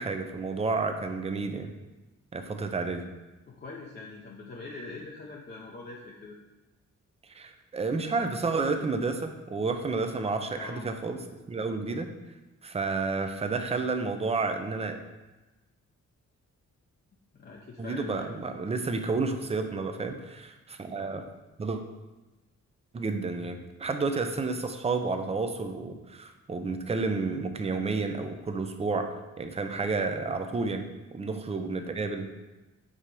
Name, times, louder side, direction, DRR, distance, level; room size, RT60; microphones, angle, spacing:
voice 1, 0.0-1.7 2.3-3.0 7.3-12.1 12.6-15.0 17.8-21.2 21.6-21.8 22.9-30.9 31.1-32.3, right 3 dB, 20° right, 6 dB, 0.5 m, -31 dB
voice 2, 3.5-6.4 10.5-10.9 17.3-18.3, left 3 dB, 35° left, -2 dB, 0.6 m, -43 dB
4.8 x 4.3 x 5.2 m, 1.1 s
wide cardioid pair, 160°, 29 cm